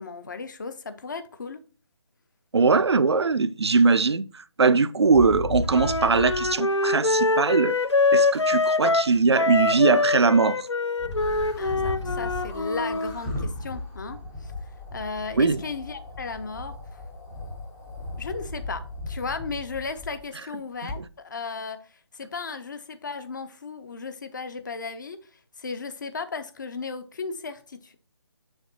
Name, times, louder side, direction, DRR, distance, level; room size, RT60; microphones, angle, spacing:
voice 1, 0.0-1.6 8.5-8.6 11.6-14.5 14.9-17.0 18.2-28.0, left 4 dB, 40° left, 0.7 m, -35 dB
voice 2, 2.5-7.8 8.1-10.7 15.3-15.6, right 4 dB, 70° right, 0.5 m, -21 dB
sound 1, 5.0-6.6 11.0-20.3 20.9-21.0, left 2 dB, 5° left, 0.5 m, -35 dB
Wind instrument woodwind instrument, 5.7-13.1, left 3 dB, 80° left, 0.6 m, -24 dB
6.9 x 6.5 x 2.8 m
figure-of-eight pair, 150°, 15 cm